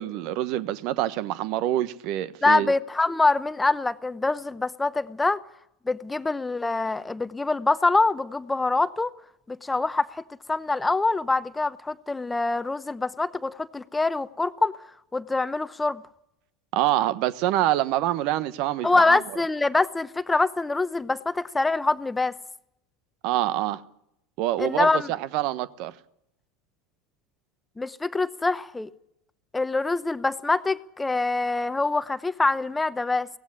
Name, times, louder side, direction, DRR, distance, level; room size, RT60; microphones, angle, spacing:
voice 1, 0.0-2.7 16.7-19.2 23.2-23.8 24.4-25.9, right 14 dB, 60° right, 1.1 m, -26 dB
voice 2, 2.4-5.4 5.9-9.1 9.5-10.2 10.5-14.7 15.1-16.0 18.8-22.3 24.6-25.1 27.8-28.9 29.5-33.3, left 3 dB, 15° left, 0.9 m, -24 dB
17.5 x 15.5 x 9.9 m
hypercardioid pair, 80°, 0 cm